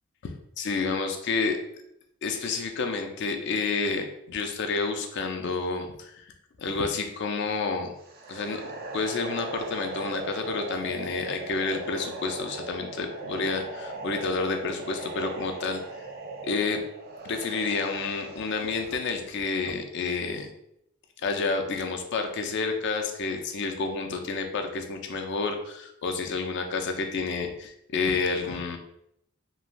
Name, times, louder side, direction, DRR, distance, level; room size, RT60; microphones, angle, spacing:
voice 1, 0.2-1.6 2.2-6.3 6.6-7.9 8.3-8.6 8.9-15.8 16.4-16.8 17.2-20.5 21.2-28.8, left 4 dB, 55° left, 5 dB, 0.4 m, -29 dB
sound 1, 8.0-19.1, right 3 dB, 45° right, 0.4 m, -39 dB
3.1 x 2.2 x 2.5 m, 0.77 s
head